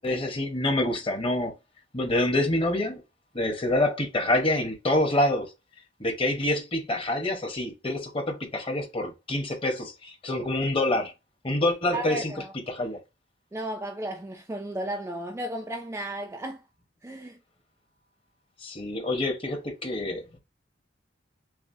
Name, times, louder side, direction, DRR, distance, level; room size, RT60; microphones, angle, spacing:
voice 1, 0.0-1.5 1.9-3.0 3.3-5.5 6.0-11.1 11.4-12.3 12.7-13.0 18.6-20.4, left 1 dB, 30° left, 0.9 m, -26 dB
voice 2, 11.9-12.5 13.5-16.6 17.0-17.4, right 1 dB, 15° right, 0.3 m, -34 dB
5.8 x 2.2 x 2.6 m
head